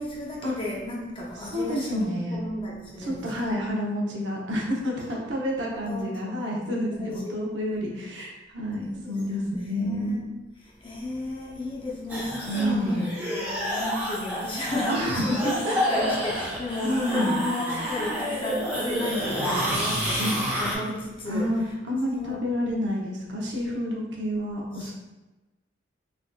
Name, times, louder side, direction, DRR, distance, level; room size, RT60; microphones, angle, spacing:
voice 1, 0.0-3.6 5.1-5.2 5.5-6.1 6.9-7.3 8.8-10.3 10.8-21.7 22.1-22.5 24.8-24.9, left 1 dB, 25° left, -3 dB, 0.5 m, -34 dB
voice 2, 1.5-2.4 3.0-10.2 12.4-13.1 14.9-16.0 16.8-17.4 20.2-20.3 21.3-24.9, equal, 65° right, -2 dB, 0.6 m, -29 dB
sound 1, 12.1-20.8, equal, 10° right, 0.7 m, -29 dB
3.3 x 2.6 x 2.2 m, 1.1 s
head